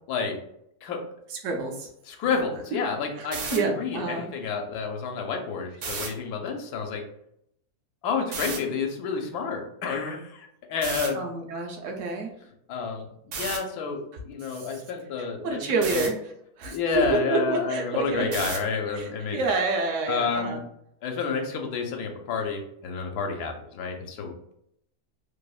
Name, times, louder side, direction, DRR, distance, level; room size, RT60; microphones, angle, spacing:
voice 1, 1.3-1.9 2.2-2.3 3.1-4.3 11.1-12.3 14.5-14.8 15.2-18.4 18.9-20.6, right 3 dB, 65° right, 2 dB, 0.8 m, -29 dB
voice 2, 2.1-7.0 8.0-11.2 12.7-15.6 15.9-16.0 16.7-19.4 20.1-20.6 21.0-24.5, left 5 dB, 80° left, 3 dB, 1.1 m, -30 dB
sound 1, 3.2-3.6 5.7-6.1 8.3-8.6 10.8-11.1 13.3-13.6 15.8-16.1 18.3-18.7, right 4 dB, 90° right, 1.2 m, -32 dB
3.0 x 2.0 x 2.3 m, 0.74 s
omnidirectional pair, 1.7 m